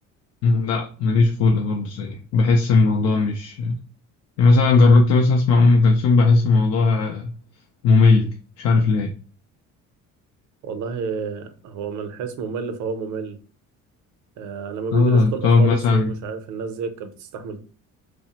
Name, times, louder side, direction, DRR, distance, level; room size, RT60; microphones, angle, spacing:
voice 1, 0.4-3.8 4.4-7.3 7.8-8.3 8.6-9.1 14.9-16.2, left 3 dB, 55° left, 0.4 m, -17 dB
voice 2, 10.6-13.4 14.4-17.6, right 5 dB, 65° right, 0.6 m, -30 dB
3.1 x 2.0 x 2.8 m
cardioid pair, 160°, 31 cm